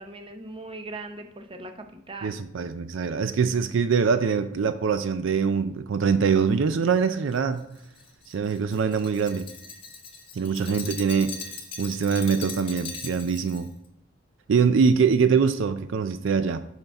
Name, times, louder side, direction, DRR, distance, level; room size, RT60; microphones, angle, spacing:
voice 1, 0.0-2.4 10.4-10.7, right 2 dB, 25° right, 6 dB, 0.6 m, -40 dB
voice 2, 2.2-7.6 8.3-9.5 10.4-11.4 11.8-13.7 14.5-16.6, right 5 dB, 70° right, 11 dB, 0.4 m, -23 dB
Glass, 7.3-13.7, left 5 dB, 25° left, 1.0 m, -40 dB
5.7 x 5.5 x 4.3 m, 0.78 s
head